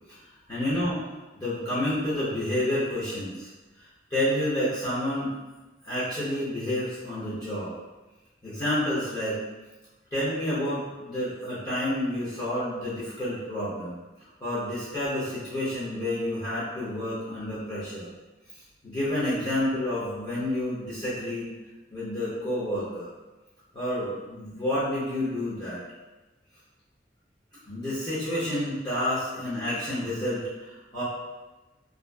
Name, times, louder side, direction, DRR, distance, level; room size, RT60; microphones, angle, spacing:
voice 1, 0.5-1.0 1.4-3.5 3.8-5.3 5.8-7.7 8.4-9.4 10.1-14.0 14.4-18.1 18.8-21.5 21.9-23.1 23.7-25.8 27.7-31.0, left 1 dB, 20° left, -11 dB, 0.6 m, -29 dB
2.5 x 2.4 x 2.2 m, 1.1 s
head